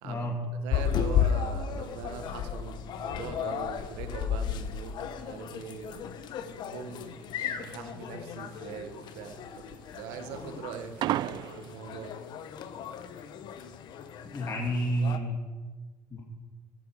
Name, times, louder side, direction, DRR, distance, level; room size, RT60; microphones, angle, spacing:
voice 1, 0.0-0.4 14.2-15.4 16.1-16.2, right 1 dB, 30° left, 0 dB, 2.2 m, -30 dB
voice 2, 0.6-6.1 6.5-12.2, right 7 dB, 75° right, 7 dB, 1.7 m, -42 dB
sound 1, 0.7-15.2, left 8 dB, 60° left, 1.1 m, -34 dB
sound 2, 7.1-12.1, right 14 dB, 55° right, 0.3 m, -35 dB
15.0 x 12.0 x 5.0 m, 1.3 s
supercardioid pair, 80°, 9 cm